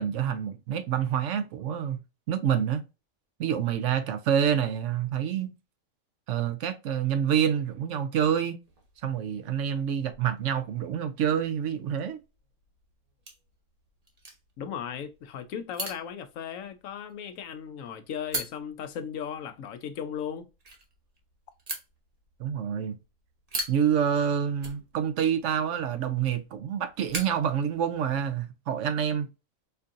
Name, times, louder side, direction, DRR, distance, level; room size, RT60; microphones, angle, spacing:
voice 1, 0.0-2.0 2.3-2.8 3.4-5.5 6.3-8.6 9.0-12.2 22.4-23.0 23.7-29.3, right 8 dB, 70° right, 0.9 m, -27 dB
sound 1, 8.6-28.3, right 2 dB, 35° right, 0.9 m, -43 dB
voice 2, 14.6-20.5, left 8 dB, 80° left, 1.0 m, -36 dB
4.5 x 2.6 x 2.4 m
omnidirectional pair, 1.4 m